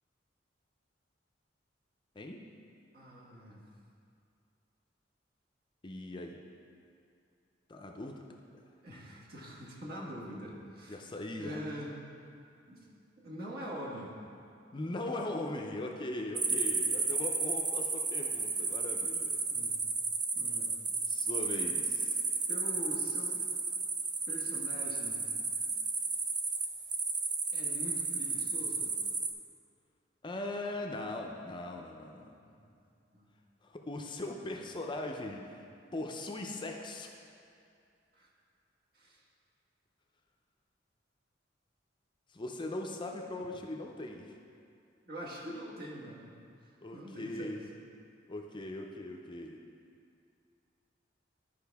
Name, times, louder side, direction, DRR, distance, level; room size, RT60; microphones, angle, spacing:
voice 1, 2.9-3.6 8.8-11.0 11.3-11.9 12.7-14.1 19.5-19.7 20.3-20.7 22.5-23.3 24.3-25.3 27.5-28.9 32.4-32.5 33.1-33.3 38.2-38.3 38.9-39.2 45.1-46.3 46.9-47.5, equal, 55° right, -4 dB, 1.5 m, -44 dB
voice 2, 5.8-6.4 7.7-8.3 10.9-11.6 14.7-19.4 21.1-22.2 30.2-32.3 33.6-35.5 35.9-37.1 42.3-44.3 46.8-47.7 48.3-49.6, left 2 dB, 25° left, 2 dB, 0.5 m, -40 dB
sound 1, 16.4-29.3, right 4 dB, 25° right, 0.5 m, -33 dB
12.0 x 5.0 x 3.5 m, 2.5 s
head